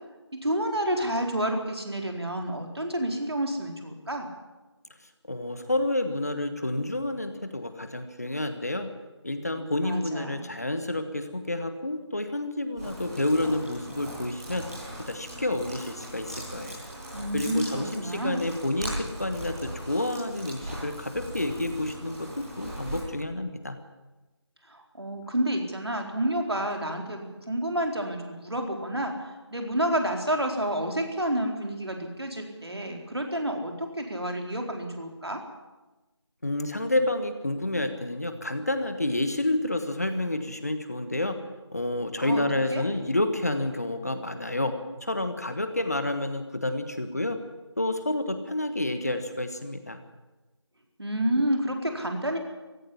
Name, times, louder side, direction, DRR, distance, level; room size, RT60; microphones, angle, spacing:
voice 1, 0.4-4.3 9.8-10.5 17.1-18.5 24.7-35.4 42.2-42.4 42.7-42.8 51.0-52.4, right 1 dB, 60° right, 3 dB, 4.2 m, -29 dB
voice 2, 5.3-8.9 9.2-14.7 15.0-16.8 17.3-23.8 36.4-41.4 41.7-44.7 45.0-47.4 47.8-50.0, left 1 dB, 35° left, 8 dB, 1.4 m, -29 dB
sound 1, 12.8-23.0, right 1 dB, 10° right, 6.8 m, -39 dB
16.5 x 15.5 x 10.0 m, 1.1 s
figure-of-eight pair, 170°, 15 cm